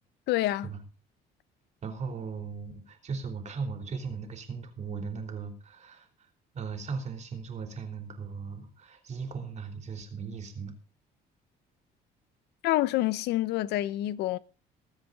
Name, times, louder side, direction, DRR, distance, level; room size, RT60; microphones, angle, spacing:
voice 1, 0.3-0.7 12.6-14.4, left 15 dB, 80° left, 0.6 m, -27 dB
voice 2, 1.8-6.3 6.5-10.7, right 5 dB, 45° right, 3.4 m, -38 dB
21.0 x 7.4 x 3.9 m
cardioid pair, 110°, 17 cm